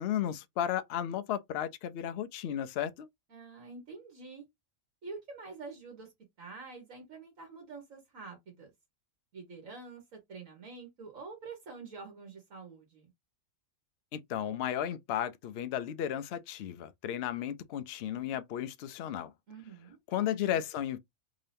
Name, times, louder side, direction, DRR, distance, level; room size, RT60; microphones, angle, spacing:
voice 1, 0.0-3.1 14.1-19.3 20.1-21.0, left 10 dB, 60° left, 0.7 m, -34 dB
voice 2, 3.3-4.4 5.0-6.1 6.4-8.7 9.3-13.1 19.5-20.0, right 4 dB, 75° right, 1.8 m, -47 dB
3.7 x 2.7 x 3.4 m
omnidirectional pair, 1.4 m